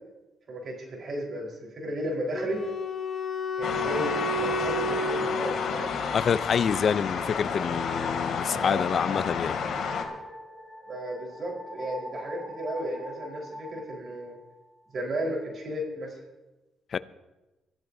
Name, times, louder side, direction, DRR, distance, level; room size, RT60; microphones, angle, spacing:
voice 1, 0.5-2.6 3.6-5.9 8.5-8.8 10.9-14.4 14.9-16.1, right 1 dB, 50° right, 4.4 m, -34 dB
Wind instrument woodwind instrument, 2.3-6.4, left 2 dB, 30° left, 5.6 m, -31 dB
sound 1, 3.6-10.0, left 6 dB, 70° left, 2.7 m, -31 dB
sound 2, 3.6-15.0, left 1 dB, 10° right, 4.7 m, -44 dB
voice 2, 6.1-9.6 16.9-17.0, left 7 dB, 50° left, 0.6 m, -27 dB
25.0 x 15.0 x 2.8 m
cardioid pair, 90°, 0 cm